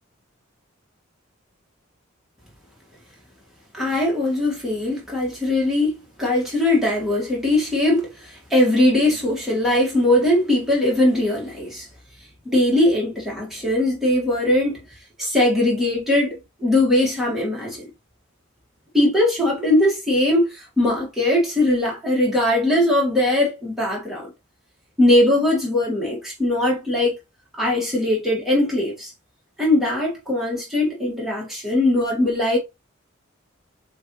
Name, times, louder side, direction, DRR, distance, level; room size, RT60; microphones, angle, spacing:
voice 1, 3.7-11.9 12.4-14.8 15.2-17.9 18.9-24.3 25.0-27.1 27.6-29.1 29.6-32.6, left 1 dB, ahead, 1.7 m, -20 dB
6.9 x 2.6 x 3.0 m
head